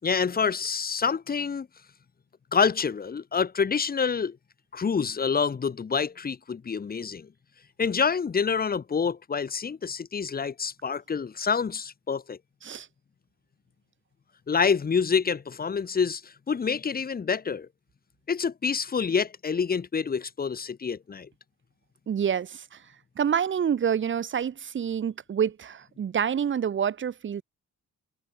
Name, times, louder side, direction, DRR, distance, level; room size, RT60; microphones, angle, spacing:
voice 1, 0.0-1.7 2.5-4.4 4.7-7.3 7.8-12.4 14.5-17.7 18.3-21.3, left 6 dB, 30° left, 6.1 m, -27 dB
voice 2, 22.1-22.8 23.2-27.4, right 8 dB, 40° right, 2.6 m, -27 dB
cardioid pair, 170°, 30 cm